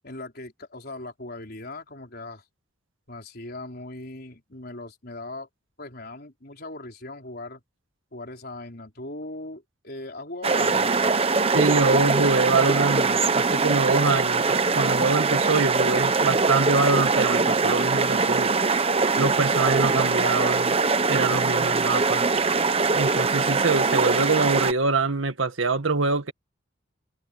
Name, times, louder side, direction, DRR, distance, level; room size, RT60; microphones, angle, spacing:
voice 1, 0.0-2.4 3.1-5.5 5.8-7.6 8.1-10.9, left 2 dB, 50° left, 4.5 m, -39 dB
sound 1, 10.4-24.7, right 4 dB, 30° right, 0.9 m, -22 dB
voice 2, 11.5-18.5 19.2-20.8 21.1-22.3 22.9-26.3, right 3 dB, 85° right, 1.8 m, -24 dB
head